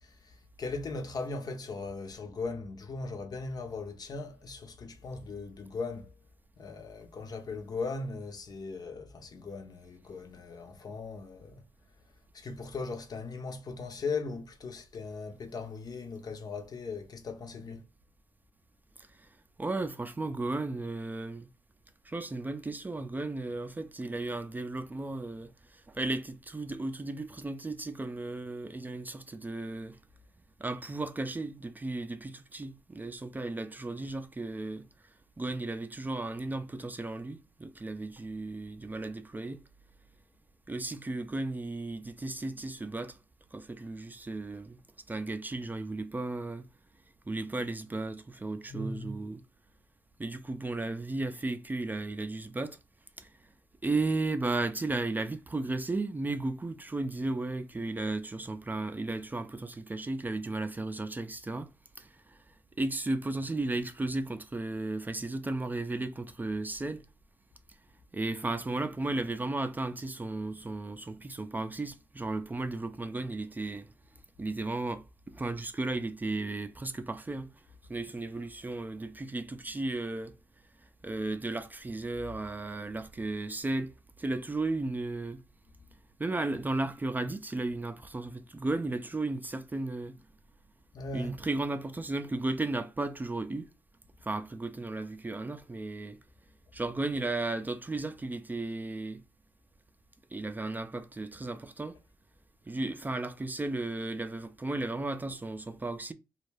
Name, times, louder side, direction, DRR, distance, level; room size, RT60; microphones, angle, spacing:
voice 1, 0.0-6.1 6.6-11.6 12.3-17.9 48.7-49.2 90.9-91.4, left 3 dB, 50° left, 0.7 m, -38 dB
voice 2, 19.0-19.3 19.6-21.5 22.0-30.0 30.6-39.6 40.7-43.2 43.5-44.8 45.1-46.7 47.3-49.4 50.2-52.8 53.2-53.3 53.8-61.7 62.0-62.4 62.8-67.1 68.1-73.9 74.4-75.1 75.3-77.5 77.9-80.4 81.0-85.4 86.2-90.3 91.1-93.7 94.2-96.2 96.7-99.2 100.3-102.0 102.7-106.1, right 2 dB, 20° right, 0.4 m, -35 dB
2.2 x 2.1 x 3.2 m
supercardioid pair, 45°, 8 cm